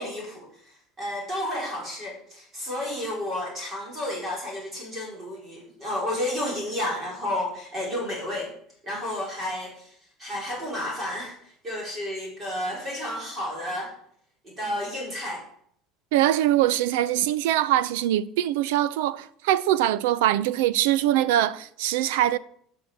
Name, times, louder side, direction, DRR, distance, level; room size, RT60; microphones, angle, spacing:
voice 1, 0.0-8.5 8.8-13.9 14.4-15.4, left 1 dB, 20° right, 4.7 m, -32 dB
voice 2, 16.1-22.4, right 13 dB, 90° right, 0.7 m, -23 dB
12.5 x 6.2 x 7.5 m
cardioid pair, 175°, 0 cm